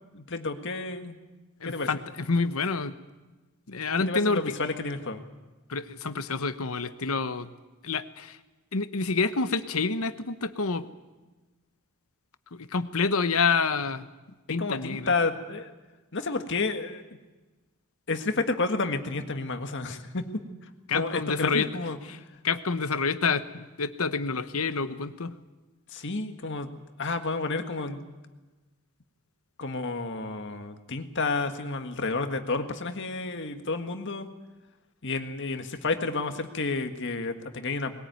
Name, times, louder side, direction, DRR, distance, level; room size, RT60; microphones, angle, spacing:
voice 1, 0.1-1.2 1.7-1.9 4.0-5.3 14.6-15.7 16.1-17.0 18.1-20.2 20.9-22.0 25.9-26.7 27.0-28.0 29.6-34.3 35.0-37.9, left 3 dB, 55° left, 7 dB, 1.8 m, -30 dB
voice 2, 1.6-2.9 3.7-4.4 5.7-7.5 7.8-8.4 8.7-10.9 12.5-14.0 14.5-15.1 20.9-21.7 22.1-22.2 22.4-25.3, left 4 dB, 75° left, 12 dB, 1.1 m, -28 dB
21.0 x 18.5 x 9.3 m, 1.2 s
head